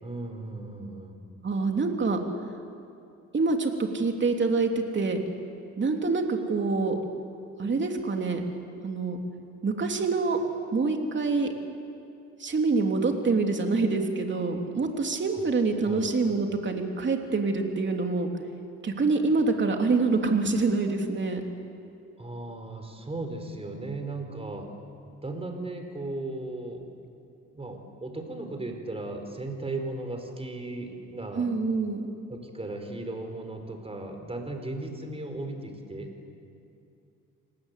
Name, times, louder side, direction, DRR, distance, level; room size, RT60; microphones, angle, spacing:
voice 1, 0.0-1.2 15.3-15.4 15.9-16.3 22.2-24.7 25.2-26.9 27.5-31.5 32.3-36.1, right 2 dB, 20° right, 5 dB, 4.6 m, -36 dB
voice 2, 1.4-2.2 3.3-5.2 5.8-7.0 7.6-8.4 8.8-9.2 9.6-10.4 10.7-11.5 12.4-18.3 18.8-21.4 31.3-32.1, right 3 dB, 40° right, 3 dB, 3.2 m, -26 dB
27.0 x 19.0 x 8.4 m, 2.7 s
cardioid pair, 90°, 30 cm